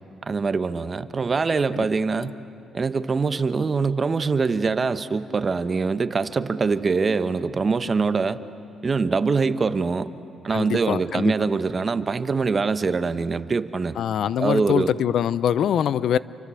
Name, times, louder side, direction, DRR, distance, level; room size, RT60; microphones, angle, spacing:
voice 1, 0.2-2.3 2.7-8.4 8.8-10.1 10.4-13.9 14.4-14.9, right 4 dB, 35° right, 12 dB, 1.0 m, -23 dB
voice 2, 10.5-11.3 14.0-16.2, left 9 dB, 70° left, 18 dB, 0.6 m, -23 dB
28.5 x 24.5 x 8.4 m, 2.8 s
cardioid pair, 90°, 0 cm